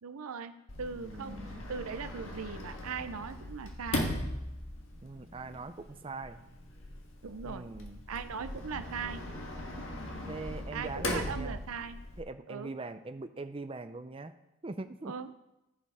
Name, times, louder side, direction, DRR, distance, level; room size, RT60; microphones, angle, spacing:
voice 1, 0.0-4.1 7.2-7.7 8.1-9.2 10.7-12.0 12.5-12.7 15.1-15.3, right 5 dB, 85° right, 10 dB, 0.6 m, -39 dB
Sliding door, 0.7-12.2, left 1 dB, 65° left, 1.6 m, -39 dB
voice 2, 0.9-1.7 5.0-6.4 7.4-8.0 10.3-11.6 12.2-14.4 14.6-15.1, right 3 dB, 25° right, 10 dB, 0.5 m, -42 dB
15.0 x 5.4 x 4.8 m, 0.93 s
head